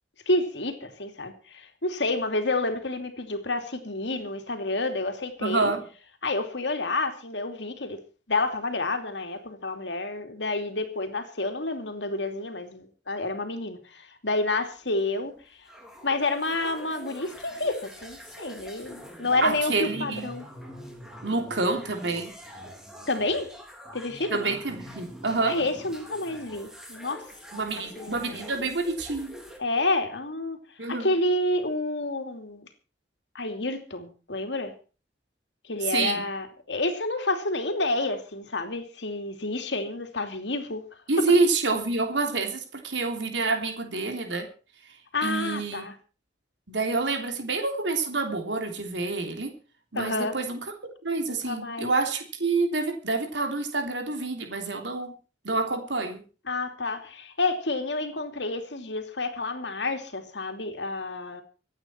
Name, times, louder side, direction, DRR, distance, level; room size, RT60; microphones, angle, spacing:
voice 1, 0.3-5.7 6.2-8.0 8.3-15.3 16.0-20.5 23.1-23.5 23.9-24.4 25.5-27.2 27.5-28.5 29.6-30.6 30.9-32.7 33.3-34.7 35.6-40.8 45.1-45.9 49.9-50.3 51.3-51.9 56.5-61.4, left 2 dB, 70° left, 6 dB, 2.8 m, -29 dB
voice 2, 5.4-5.9 19.4-20.3 21.2-22.3 24.3-25.6 27.5-29.4 30.8-31.1 35.9-36.2 41.1-44.5 45.2-45.9 46.7-49.5 49.9-50.6 51.0-55.2 55.4-56.2, right 3 dB, 75° right, 4 dB, 3.3 m, -27 dB
sound 1, 14.6-29.6, equal, 5° right, 3.5 m, -44 dB
25.5 x 9.2 x 4.5 m, 0.36 s
head